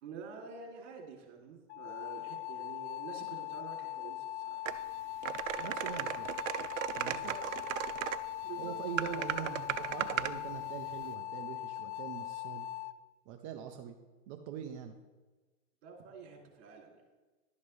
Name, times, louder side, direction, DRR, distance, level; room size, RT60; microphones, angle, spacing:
voice 1, 0.0-4.6 7.0-7.4 8.4-9.0 15.8-17.0, right 5 dB, 55° right, 0 dB, 2.7 m, -48 dB
sound 1, 1.7-12.9, left 14 dB, 60° left, 0.5 m, -41 dB
sound 2, 4.7-4.8 5.2-8.2 9.0-10.4, right 11 dB, 80° right, 0.6 m, -36 dB
voice 2, 5.6-6.3 6.9-7.4 8.6-12.7 13.3-14.0 14.3-15.0, right 8 dB, 30° right, 4 dB, 0.4 m, -43 dB
11.5 x 7.2 x 3.2 m, 1.2 s
hypercardioid pair, 135°, 38 cm